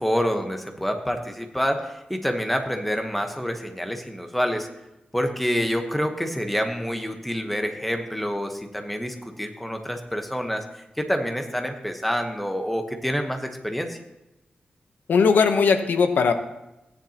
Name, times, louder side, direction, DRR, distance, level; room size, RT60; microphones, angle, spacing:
voice 1, 0.0-4.7 5.1-14.0, equal, 5° left, 5 dB, 1.0 m, -27 dB
voice 2, 15.1-16.3, left 5 dB, 85° left, 8 dB, 0.9 m, -19 dB
16.0 x 10.0 x 2.9 m, 0.94 s
wide cardioid pair, 150°, 3 cm